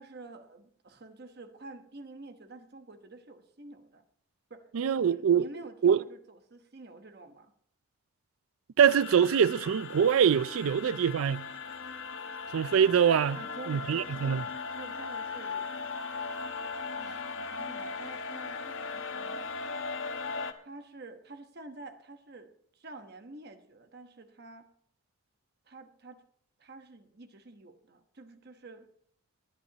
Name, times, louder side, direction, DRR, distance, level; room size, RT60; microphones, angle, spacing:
voice 1, 0.0-4.0 4.5-7.5 10.9-11.0 13.3-15.7 16.2-19.5 20.6-24.7 25.7-26.2 26.6-28.9, right 2 dB, 50° right, 1.1 m, -49 dB
voice 2, 4.7-5.5 5.8-6.0 8.8-11.4 12.5-13.4 13.7-14.4, right 8 dB, 80° right, 0.4 m, -24 dB
sound 1, 8.9-20.5, left 4 dB, 75° left, 1.0 m, -38 dB
20.0 x 10.5 x 2.9 m
head